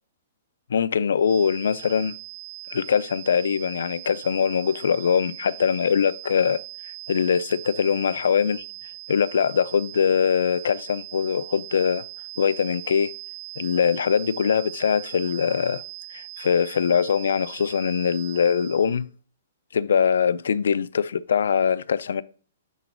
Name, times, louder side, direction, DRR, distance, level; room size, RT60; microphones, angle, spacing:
voice 1, 0.7-2.2 2.7-6.6 7.1-8.6 9.1-12.0 12.4-13.1 13.6-15.8 16.1-19.1 19.7-22.2, left 7 dB, 85° left, 0.4 m, -22 dB
sound 1, 1.2-19.0, right 20 dB, 30° right, 0.5 m, -40 dB
9.3 x 3.9 x 3.8 m
hypercardioid pair, 175°, 0 cm